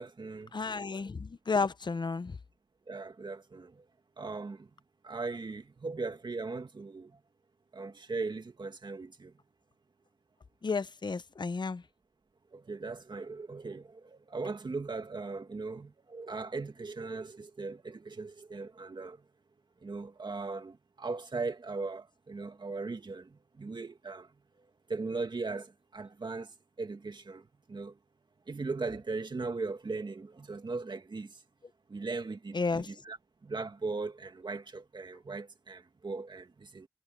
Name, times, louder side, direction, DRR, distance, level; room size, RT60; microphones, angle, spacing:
voice 1, 0.0-0.5 2.9-3.8 4.2-4.7 5.0-7.2 7.7-9.3 12.5-19.2 19.8-24.3 24.9-28.0 28.5-31.4 31.9-33.2 33.4-36.9, right 3 dB, 70° right, 2.1 m, -39 dB
voice 2, 0.5-2.4 10.6-11.8 32.5-32.9, left 4 dB, 70° left, 0.8 m, -32 dB
wide cardioid pair, 45°, 8 cm